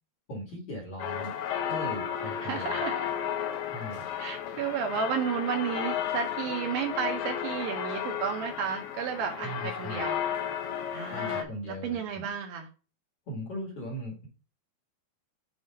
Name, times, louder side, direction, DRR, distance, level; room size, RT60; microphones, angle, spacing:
voice 1, 0.3-1.3 1.6-2.8 3.7-4.0 9.4-10.1 11.1-12.2 13.3-14.3, equal, 50° left, -2 dB, 2.1 m, -39 dB
sound 1, 1.0-11.4, left 9 dB, 75° left, 2.2 m, -33 dB
voice 2, 2.4-3.1 4.2-10.2 10.9-12.7, right 7 dB, 75° right, 3 dB, 2.3 m, -32 dB
7.9 x 2.7 x 5.1 m, 0.33 s
omnidirectional pair, 4.7 m